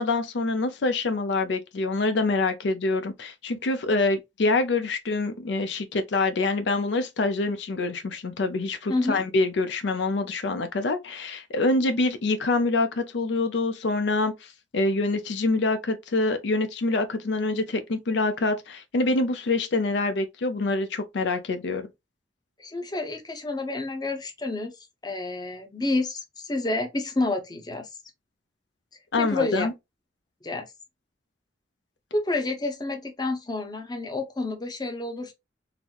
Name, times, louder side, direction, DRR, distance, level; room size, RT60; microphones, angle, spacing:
voice 1, 0.0-21.9 29.1-29.7, left 3 dB, 70° left, 0.5 m, -26 dB
voice 2, 8.9-9.2 22.6-27.9 29.2-29.7 30.4-30.7 32.1-35.3, left 2 dB, 20° left, 0.7 m, -29 dB
3.9 x 2.0 x 2.9 m
head